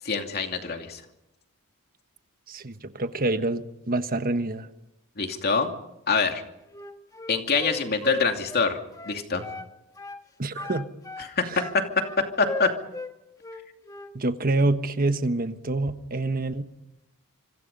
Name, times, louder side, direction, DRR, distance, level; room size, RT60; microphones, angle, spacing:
voice 1, 0.0-1.0 5.2-5.7 6.1-6.4 7.3-8.8 9.0-9.4 11.4-11.5 12.4-12.7, left 4 dB, 45° left, 2.7 m, -25 dB
voice 2, 2.5-4.7 10.4-10.9 11.5-11.6 14.1-16.6, right 2 dB, 40° right, 1.3 m, -26 dB
Wind instrument woodwind instrument, 6.7-9.7 10.0-10.2 10.5-13.1 13.4-14.1, left 2 dB, 15° left, 1.4 m, -36 dB
26.5 x 25.5 x 5.4 m
head